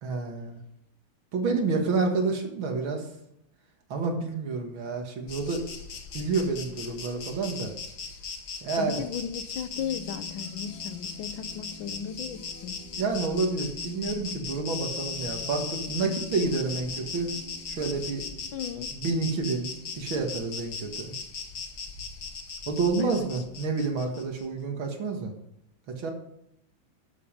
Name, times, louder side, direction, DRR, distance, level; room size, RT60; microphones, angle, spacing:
voice 1, 0.0-0.6 1.3-3.1 3.9-5.6 6.1-7.7 8.6-9.1 13.0-17.3 17.7-18.2 18.9-19.7 20.0-21.1 22.7-25.3 25.9-26.1, right 4 dB, 85° right, 3 dB, 2.5 m, -29 dB
Insect, 5.3-24.5, left 5 dB, 55° left, 1.8 m, -38 dB
voice 2, 8.8-12.8 18.5-18.9 23.0-23.3, left 8 dB, 80° left, 11 dB, 1.6 m, -35 dB
sound 1, 9.7-20.1, left 6 dB, 5° left, 5.5 m, -47 dB
13.0 x 6.8 x 5.2 m, 0.76 s
omnidirectional pair, 2.1 m